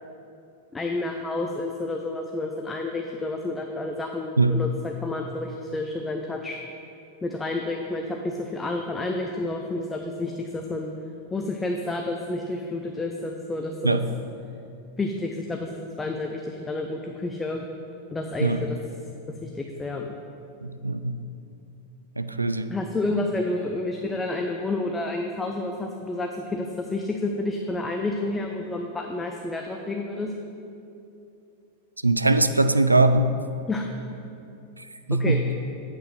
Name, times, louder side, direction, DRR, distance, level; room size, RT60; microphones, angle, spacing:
voice 1, 0.7-6.6 7.2-10.9 11.3-14.0 15.0-17.6 18.1-18.8 19.4-20.1 22.7-30.3 33.7-33.8 35.2-35.4, left 2 dB, 15° left, 2 dB, 0.5 m, -30 dB
voice 2, 20.6-21.2 22.2-22.7 32.0-33.4 35.1-35.4, right 2 dB, 85° right, 10 dB, 0.3 m, -21 dB
8.7 x 7.8 x 3.3 m, 2.7 s
figure-of-eight pair, 90°, 0 cm